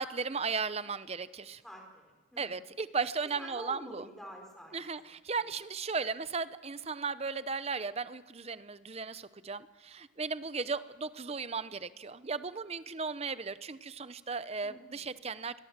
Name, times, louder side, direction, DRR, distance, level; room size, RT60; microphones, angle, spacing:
voice 1, 0.0-1.6 2.4-4.1 4.7-15.6, right 4 dB, 30° right, 14 dB, 0.7 m, -36 dB
voice 2, 1.6-2.5 3.3-4.8 5.4-5.5 14.6-15.1, equal, ahead, 1 dB, 4.5 m, -48 dB
26.5 x 22.5 x 7.4 m, 1.3 s
head